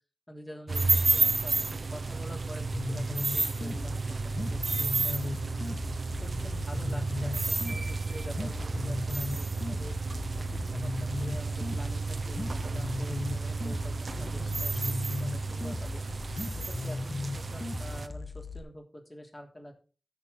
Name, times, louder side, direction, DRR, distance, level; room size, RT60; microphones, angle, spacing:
voice 1, 0.3-5.6 5.9-19.7, equal, 30° left, 1 dB, 3.2 m, -47 dB
sound 1, 0.7-18.1, right 3 dB, 65° right, 0.7 m, -31 dB
sound 2, 2.6-18.6, left 3 dB, 50° left, 1.3 m, -37 dB
15.0 x 6.7 x 4.0 m, 0.36 s
wide cardioid pair, 60°, 0 cm